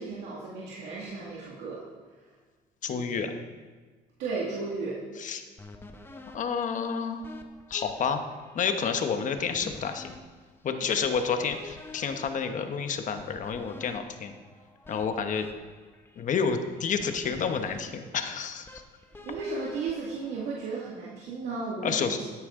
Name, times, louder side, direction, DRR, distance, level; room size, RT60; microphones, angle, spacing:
voice 1, 0.0-1.8 2.9-3.3 4.2-5.0 19.3-22.3, right 4 dB, 85° right, -5 dB, 2.1 m, -34 dB
voice 2, 2.8-3.3 5.2-5.4 6.2-7.2 7.7-8.2 8.5-10.1 10.6-14.3 14.9-15.5 16.2-18.8 21.8-22.2, left 6 dB, 50° left, 7 dB, 1.1 m, -29 dB
sound 1, 5.6-20.8, left 3 dB, 15° left, 0.9 m, -49 dB
13.0 x 9.4 x 3.8 m, 1.4 s
cardioid pair, 110°, 17 cm